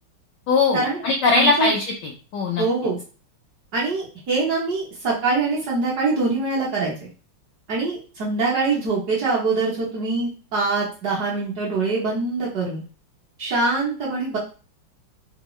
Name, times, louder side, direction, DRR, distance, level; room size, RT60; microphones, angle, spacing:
voice 1, 0.5-2.6, left 3 dB, 75° left, 1 dB, 1.0 m, -20 dB
voice 2, 1.3-1.7 2.6-3.0 3.7-7.1 7.7-12.8 13.4-14.4, right 3 dB, 60° right, -5 dB, 1.2 m, -24 dB
3.6 x 2.1 x 3.0 m, 0.37 s
omnidirectional pair, 2.4 m